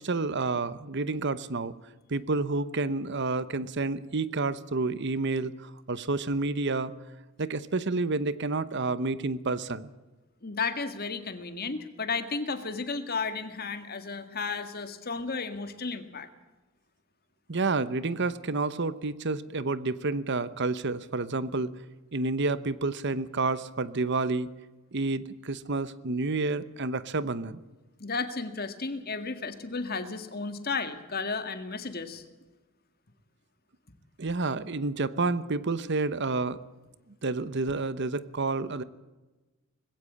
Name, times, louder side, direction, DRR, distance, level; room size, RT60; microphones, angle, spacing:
voice 1, 0.0-1.7 2.1-6.9 7.4-9.9 17.5-21.7 22.1-24.5 24.9-27.6 34.2-36.6 37.2-38.8, right 3 dB, 55° right, 15 dB, 0.9 m, -29 dB
voice 2, 10.4-16.3 28.0-32.2, left 4 dB, 45° left, 9 dB, 1.9 m, -33 dB
20.5 x 16.5 x 8.6 m, 1.1 s
head